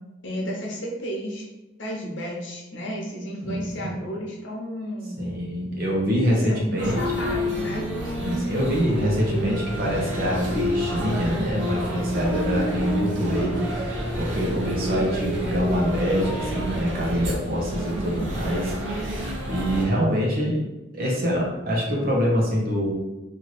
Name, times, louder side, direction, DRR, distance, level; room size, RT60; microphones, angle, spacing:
voice 1, 0.2-1.5 1.8-5.3 6.5-7.9, equal, 80° left, -1 dB, 1.0 m, -32 dB
voice 2, 3.4-3.9 5.2-7.0 8.2-19.2 19.5-20.6 20.9-22.9, equal, 55° right, -3 dB, 1.1 m, -25 dB
sound 1, 6.8-19.8, equal, 80° right, 0.9 m, -29 dB
3.2 x 2.9 x 4.1 m, 1.0 s
head